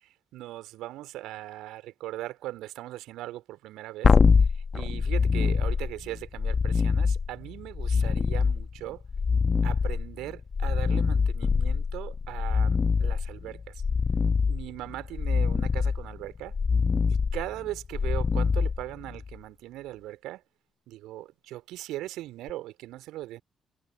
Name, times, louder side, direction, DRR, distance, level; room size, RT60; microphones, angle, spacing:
voice 1, 0.3-4.1 4.5-9.0 9.6-13.8 14.5-16.5 17.3-20.4 20.9-23.4, right 16 dB, 65° right, 3.8 m, -39 dB
sound 1, 4.0-19.3 22.5-22.6, left 5 dB, 40° left, 1.2 m, -25 dB
figure-of-eight pair, 40°, 0 cm